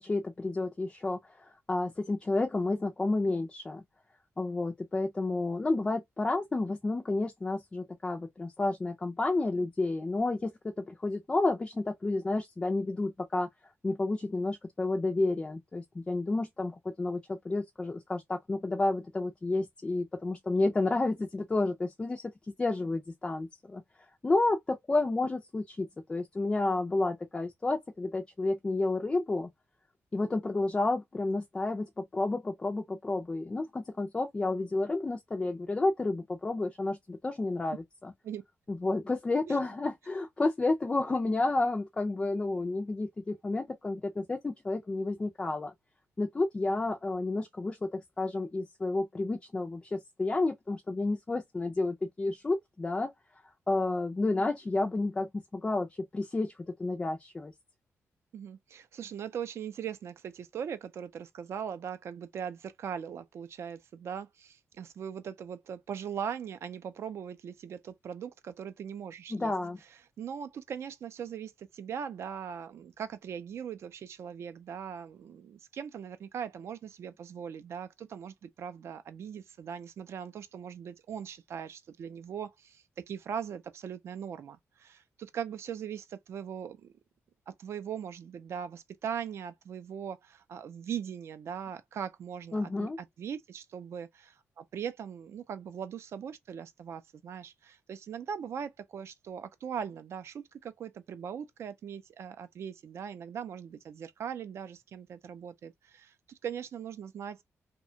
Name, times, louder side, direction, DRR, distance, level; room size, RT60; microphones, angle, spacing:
voice 1, 0.0-3.8 4.4-13.5 13.8-22.3 22.6-23.8 24.2-29.5 30.1-38.1 38.7-45.7 46.2-53.1 53.7-57.5 69.3-69.8 92.5-93.0, left 2 dB, 15° left, 0.3 m, -31 dB
voice 2, 58.3-69.5 70.2-86.9 87.5-107.4, right 8 dB, 60° right, 0.4 m, -40 dB
2.8 x 2.2 x 2.5 m
wide cardioid pair, 175°, 5 cm